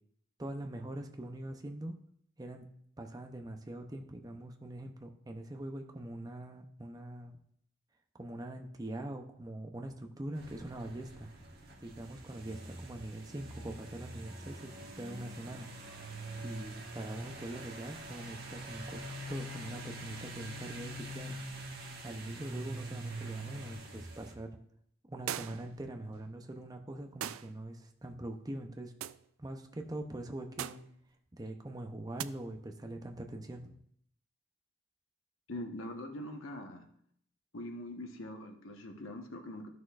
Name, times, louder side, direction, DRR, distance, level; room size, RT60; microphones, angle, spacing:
voice 1, 0.4-2.0 2.4-2.7 3.0-7.3 8.1-11.3 11.8-15.7 16.4-21.4 22.0-24.5 25.1-28.9 29.4-30.8 31.4-33.7, right 1 dB, 20° right, 4 dB, 0.6 m, -43 dB
sound 1, 10.3-24.3, right 1 dB, 50° right, 1.3 m, -45 dB
sound 2, 25.3-25.7 27.2-27.5 29.0-29.2 30.6-30.9 32.2-32.3, right 11 dB, 90° right, 0.3 m, -39 dB
voice 2, 35.5-36.8 37.5-39.7, left 1 dB, 80° left, 3 dB, 1.1 m, -43 dB
13.0 x 6.3 x 2.4 m, 0.69 s
head